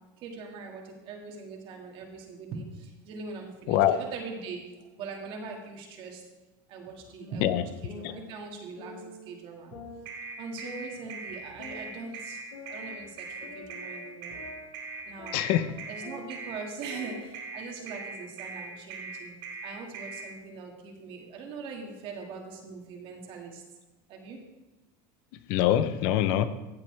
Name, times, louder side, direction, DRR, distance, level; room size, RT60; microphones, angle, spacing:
voice 1, 0.0-6.2 6.7-9.8 10.4-14.3 15.0-15.3 15.9-19.4 19.6-23.6 24.1-24.4, right 4 dB, 55° right, 1 dB, 2.2 m, -41 dB
sound 1, 7.2-9.3 9.7-12.1 12.5-16.6 16.9-18.9, left 3 dB, 85° left, 2.8 m, -47 dB
sound 2, 10.1-20.2, right 5 dB, 85° right, 2.5 m, -40 dB
voice 2, 15.3-15.7 25.5-26.5, left 11 dB, 65° left, 12 dB, 0.8 m, -24 dB
15.0 x 7.1 x 3.4 m, 1.1 s
supercardioid pair, 125°, 11 cm